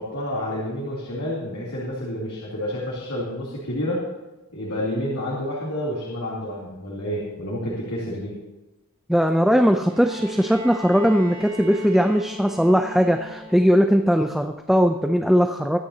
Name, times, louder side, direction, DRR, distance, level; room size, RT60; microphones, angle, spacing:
voice 1, 0.0-4.0 4.5-8.4, left 1 dB, 90° left, -6 dB, 3.3 m, -29 dB
voice 2, 9.1-15.8, equal, ahead, 5 dB, 0.5 m, -19 dB
Bowed string instrument, 9.9-13.9 15.2-15.3, equal, 35° right, 5.0 m, -38 dB
23.0 x 9.5 x 2.9 m, 1.1 s
head